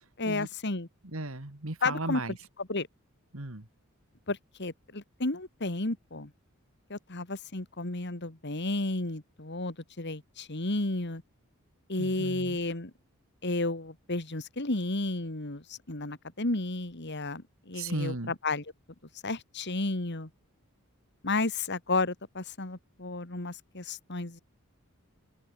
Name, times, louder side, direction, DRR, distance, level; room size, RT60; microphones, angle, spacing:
voice 1, 0.2-0.9 1.8-2.2 2.6-2.9 4.3-6.3 6.9-11.2 11.9-12.9 13.4-18.6 19.2-20.3 21.2-24.4, left 2 dB, 50° left, 2.4 m, -32 dB
voice 2, 1.0-2.3 3.3-3.7 12.0-12.6 17.7-18.3, right 2 dB, 65° right, 2.3 m, -35 dB
open air
head